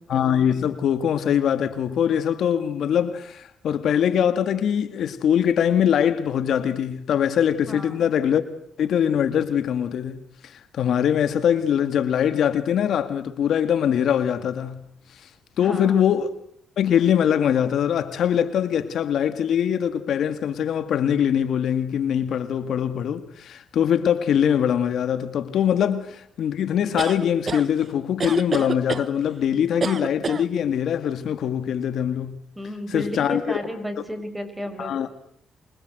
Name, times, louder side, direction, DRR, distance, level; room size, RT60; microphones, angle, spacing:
voice 1, 0.1-8.4 8.8-14.9 15.1-15.3 15.6-16.3 16.8-32.4 32.9-33.6 34.8-35.1, left 9 dB, 70° left, 2.0 m, -22 dB
voice 2, 7.7-8.1 15.6-16.0 32.6-35.0, equal, 10° right, 5.9 m, -33 dB
sound 1, 27.0-27.6 28.2-29.1 29.8-30.4, right 5 dB, 40° right, 1.6 m, -27 dB
29.0 x 25.5 x 7.9 m
cardioid pair, 90°, 0 cm